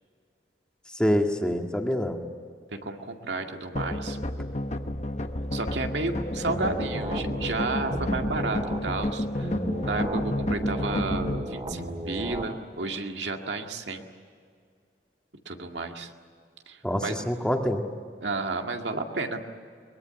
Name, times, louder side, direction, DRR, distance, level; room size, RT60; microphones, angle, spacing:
voice 1, 1.0-2.2 16.8-17.8, equal, 5° left, 3 dB, 1.8 m, -25 dB
voice 2, 2.7-4.2 5.5-9.6 9.8-14.0 15.5-16.1 16.7-17.2 18.2-19.4, right 3 dB, 85° right, 4 dB, 2.1 m, -32 dB
sound 1, 3.8-11.4, left 1 dB, 40° left, 1.0 m, -31 dB
sound 2, 6.4-8.8 9.4-12.4, right 1 dB, 30° right, 2.8 m, -34 dB
23.0 x 21.5 x 8.9 m, 2.2 s
head